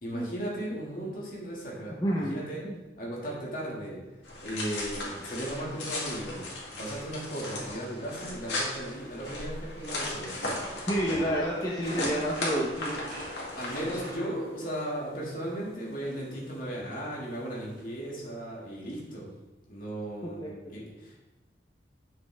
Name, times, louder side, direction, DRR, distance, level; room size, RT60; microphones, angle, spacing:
voice 1, 0.0-2.6 3.0-4.0 4.4-10.4 11.0-11.7 13.5-19.3 19.7-21.2, right 1 dB, 50° left, -4 dB, 2.3 m, -36 dB
voice 2, 2.0-2.8 10.9-13.0 20.4-20.5, equal, 20° left, -5 dB, 0.9 m, -29 dB
sound 1, 4.2-14.1, left 1 dB, 80° left, 2.2 m, -37 dB
sound 2, 8.9-19.1, equal, 50° right, 2.8 m, -47 dB
8.0 x 6.4 x 3.5 m, 1.1 s
head